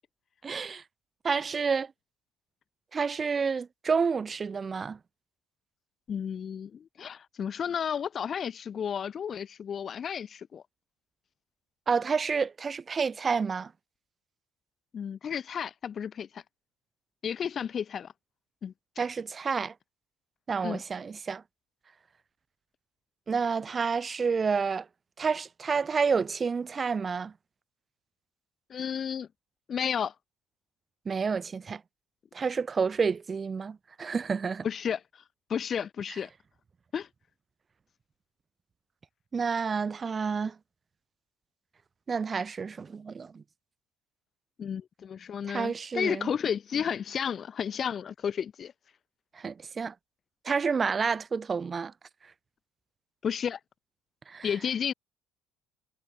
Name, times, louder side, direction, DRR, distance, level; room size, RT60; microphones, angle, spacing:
voice 1, 0.4-0.8 1.2-1.9 2.9-5.0 11.9-13.7 19.0-19.7 20.5-21.4 23.3-24.9 25.2-27.3 31.1-31.8 32.3-34.7 39.3-40.6 42.1-43.4 45.5-46.3 49.3-49.9 50.4-51.9 54.3-54.5, right 5 dB, 35° right, 1.9 m, -29 dB
voice 2, 6.1-10.6 14.9-16.4 17.2-18.1 18.6-18.7 20.6-20.8 28.7-29.3 29.7-30.1 34.6-35.2 35.5-36.3 36.9-37.1 44.6-48.7 53.2-53.6 54.4-54.9, left 7 dB, 45° left, 0.7 m, -32 dB
figure-of-eight pair, 55°, 0 cm